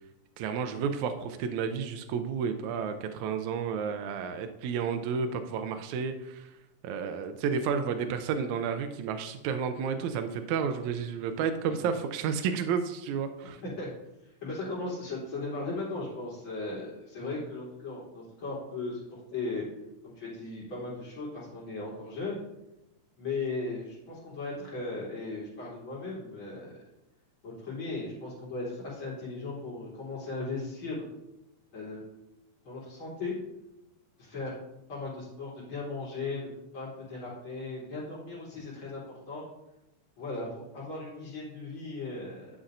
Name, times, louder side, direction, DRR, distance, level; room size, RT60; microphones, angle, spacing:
voice 1, 0.4-6.5 6.8-13.6, right 6 dB, 80° right, 7 dB, 1.9 m, -31 dB
voice 2, 11.6-11.9 13.6-13.9 14.4-19.0 19.3-19.7 20.0-22.4 23.2-26.7 27.4-31.0 31.7-32.0 32.6-33.3 34.2-34.5 34.9-39.0 39.3-39.4 40.2-42.5, left 3 dB, 45° left, -7 dB, 4.2 m, -37 dB
11.5 x 7.1 x 2.6 m, 0.91 s
omnidirectional pair, 3.3 m